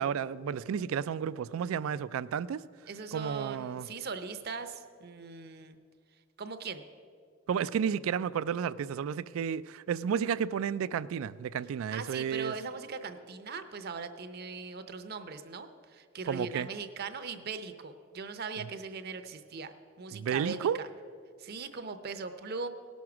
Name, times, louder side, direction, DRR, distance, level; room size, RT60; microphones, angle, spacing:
voice 1, 0.0-2.6 3.1-3.9 7.5-12.5 16.3-16.7 18.6-18.7 20.1-20.8, right 7 dB, 80° right, 0.3 m, -32 dB
voice 2, 2.9-5.8 6.4-6.8 11.9-20.9 21.4-22.7, right 4 dB, 50° right, 0.6 m, -40 dB
17.5 x 6.3 x 5.9 m
head